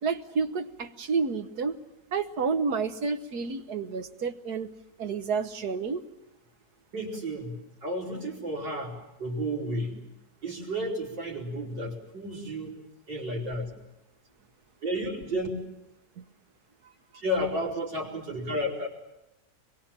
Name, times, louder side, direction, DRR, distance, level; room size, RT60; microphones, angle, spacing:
voice 1, 0.0-1.8 2.1-4.7 5.0-6.0 16.2-16.3, right 5 dB, 65° right, 10 dB, 1.7 m, -30 dB
voice 2, 6.9-10.0 10.4-12.8 13.1-13.7 14.8-15.5 16.8-18.9, equal, 85° right, -1 dB, 5.5 m, -32 dB
24.0 x 22.5 x 8.9 m, 0.89 s
omnidirectional pair, 1.9 m